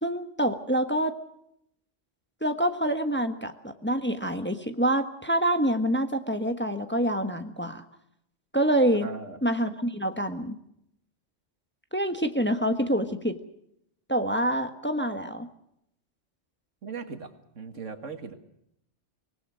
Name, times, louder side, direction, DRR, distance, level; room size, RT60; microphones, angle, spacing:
voice 1, 0.0-1.1 2.4-7.8 8.5-9.1 9.4-10.6 11.9-13.4 14.1-15.5, right 1 dB, 10° left, 7 dB, 1.3 m, -26 dB
voice 2, 9.0-9.4 16.8-17.3 17.6-18.3, right 5 dB, 85° right, 7 dB, 2.3 m, -38 dB
25.0 x 19.5 x 6.2 m, 0.76 s
omnidirectional pair, 1.2 m